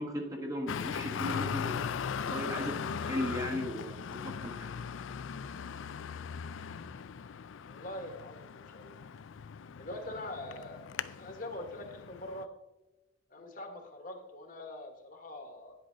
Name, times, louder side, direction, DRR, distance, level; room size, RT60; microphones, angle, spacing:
voice 1, 0.0-1.8 2.2-4.7, left 1 dB, 15° right, 2 dB, 1.0 m, -36 dB
Traffic noise roadway noise, 0.7-12.4, left 7 dB, 75° left, 0.4 m, -39 dB
voice 2, 7.7-9.0 9.8-12.5 13.3-15.7, left 1 dB, 45° left, 4 dB, 1.4 m, -43 dB
10.0 x 7.9 x 3.9 m, 1.0 s
head